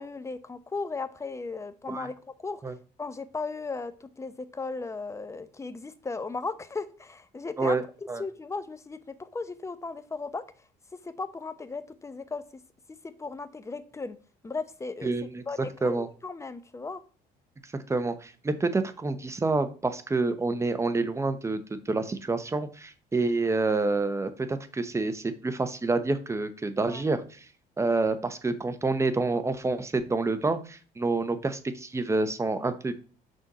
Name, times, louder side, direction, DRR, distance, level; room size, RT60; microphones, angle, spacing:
voice 1, 0.0-2.1 2.4-2.6 3.0-7.8 8.2-10.6 11.0-12.4 12.9-14.2 14.4-15.1 15.5-17.0 26.8-27.0, left 3 dB, 15° left, 11 dB, 0.8 m, -36 dB
voice 2, 15.0-15.4 15.8-16.1 17.9-27.4 27.8-32.9, right 3 dB, 15° right, 10 dB, 0.9 m, -28 dB
6.4 x 4.4 x 5.4 m, 0.38 s
cardioid pair, 110°, 17 cm